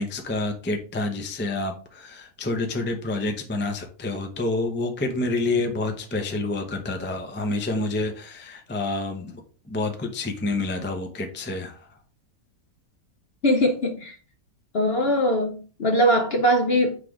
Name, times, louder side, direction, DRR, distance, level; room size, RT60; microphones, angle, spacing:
voice 1, 0.0-9.3 9.7-11.9, left 2 dB, 15° left, 0.3 m, -28 dB
voice 2, 13.4-14.2 14.7-17.0, equal, 55° left, 0.7 m, -21 dB
5.9 x 3.3 x 4.9 m
omnidirectional pair, 1.8 m